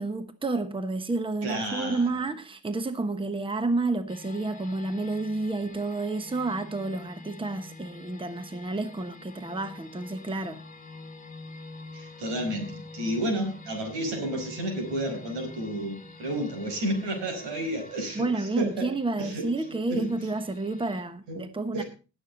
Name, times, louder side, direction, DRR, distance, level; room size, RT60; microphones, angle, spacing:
voice 1, 0.0-10.6 18.1-21.8, right 3 dB, 15° right, 1.1 m, -30 dB
voice 2, 1.4-2.1 11.9-18.9 19.2-19.5 19.9-20.1 21.3-21.4 21.7-21.8, right 1 dB, 85° right, 5.1 m, -31 dB
sound 1, 4.1-21.0, left 3 dB, 20° left, 1.7 m, -46 dB
19.0 x 7.1 x 3.9 m
supercardioid pair, 75°, 41 cm